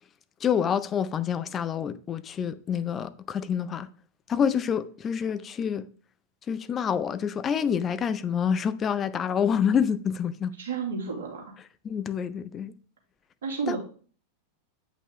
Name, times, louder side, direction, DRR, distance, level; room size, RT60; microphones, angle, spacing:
voice 1, 0.4-3.9 4.3-5.9 6.5-10.5 11.8-12.7 13.7-13.8, left 7 dB, 25° left, 0.5 m, -27 dB
voice 2, 10.6-11.5 13.4-13.8, right 5 dB, 60° right, 2.5 m, -31 dB
8.3 x 5.4 x 3.6 m
figure-of-eight pair, 90°, 0 cm